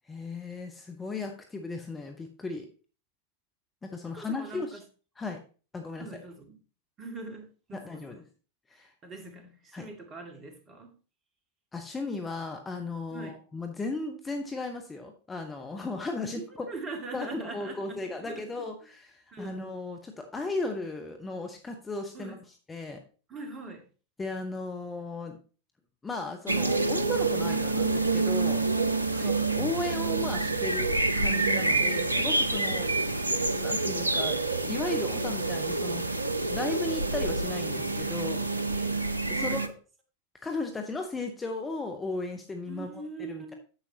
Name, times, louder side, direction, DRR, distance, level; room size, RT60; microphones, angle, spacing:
voice 1, 0.1-2.7 3.8-4.7 5.2-5.4 5.7-6.1 7.8-8.2 8.7-8.9 9.7-9.8 11.7-16.7 17.1-22.3 22.7-23.0 24.2-25.4 26.0-28.6 29.2-32.9 33.5-34.4 34.6-36.2 36.5-38.4 39.4-39.7 40.4-42.9 43.2-43.5, left 3 dB, 15° left, 4 dB, 1.0 m, -36 dB
voice 2, 4.0-4.8 6.0-6.6 7.0-8.2 9.0-11.0 13.1-13.4 16.2-18.7 19.3-19.6 22.1-22.4 23.3-23.9 29.0-29.4 32.7-33.0 38.7-38.9 39.3-39.6 42.7-43.6, right 3 dB, 25° right, 4 dB, 2.1 m, -43 dB
sound 1, 26.5-39.7, right 3 dB, 85° right, 0.6 m, -27 dB
9.9 x 7.4 x 2.9 m, 0.37 s
figure-of-eight pair, 90°, 0 cm